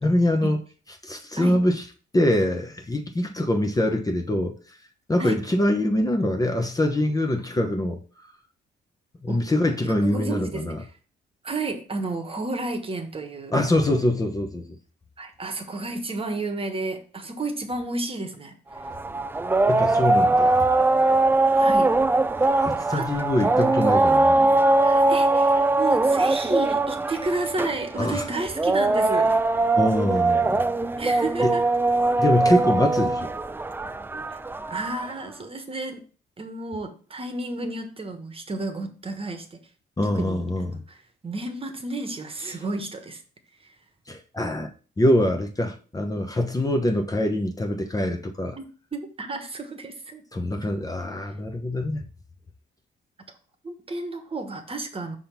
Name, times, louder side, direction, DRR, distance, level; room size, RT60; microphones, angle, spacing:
voice 1, 0.0-0.6 1.0-1.8 2.1-4.8 5.1-8.0 9.2-10.8 13.5-14.8 19.7-20.7 22.4-24.5 28.0-28.3 29.7-30.6 31.4-31.5 32.2-33.3 40.0-40.7 44.1-44.7 45.0-48.6 50.3-52.0, left 1 dB, 20° left, 0.9 m, -24 dB
voice 2, 9.8-10.9 11.4-13.6 15.2-18.9 21.5-21.9 22.4-23.1 24.8-29.4 31.0-31.6 34.3-34.4 34.7-36.0 36.4-39.6 40.0-43.2 43.6-43.7 48.5-48.6 48.9-50.2 50.6-50.7 51.2-51.3 53.6-55.2, right 2 dB, 30° right, 1.2 m, -32 dB
sound 1, 18.8-35.1, right 2 dB, 10° right, 0.3 m, -21 dB
5.7 x 3.6 x 5.9 m
cardioid pair, 90°, 20 cm